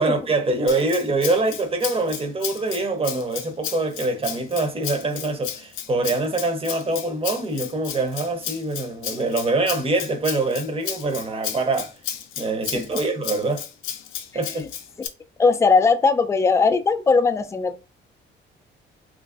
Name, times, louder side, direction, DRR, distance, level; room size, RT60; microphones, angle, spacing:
voice 1, 0.0-11.9 12.4-13.6 14.3-14.6, right 2 dB, 30° right, 0.7 m, -24 dB
Rattle (instrument), 0.7-15.1, left 9 dB, 90° left, 0.4 m, -33 dB
voice 2, 15.4-17.7, left 4 dB, 15° left, 0.3 m, -19 dB
3.0 x 2.5 x 2.4 m
cardioid pair, 90°, 20 cm